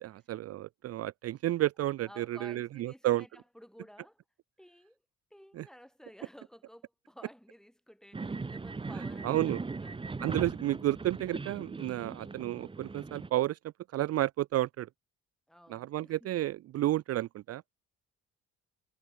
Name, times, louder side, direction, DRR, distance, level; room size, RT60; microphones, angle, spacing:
voice 1, 0.0-3.2 5.6-5.7 9.2-9.6 10.2-13.6 13.9-14.9 15.7-17.7, right 14 dB, 55° right, 0.4 m, -31 dB
voice 2, 2.1-4.2 4.6-5.0 5.3-10.5 15.5-16.3, equal, ahead, 5.0 m, -54 dB
sound 1, 8.1-13.3, right 3 dB, 15° right, 0.9 m, -39 dB
cardioid pair, 90°, 30 cm